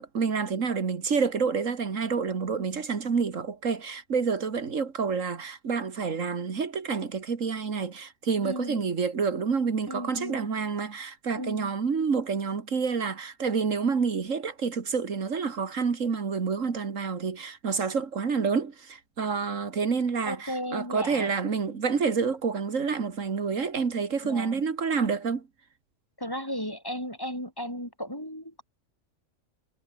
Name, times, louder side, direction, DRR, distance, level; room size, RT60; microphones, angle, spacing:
voice 1, 0.0-25.5, right 5 dB, 85° right, 2.2 m, -28 dB
voice 2, 8.4-8.9 9.9-10.5 11.4-11.7 20.2-21.3 24.2-24.6 26.2-28.6, equal, 15° left, 7.2 m, -35 dB
omnidirectional pair, 1.3 m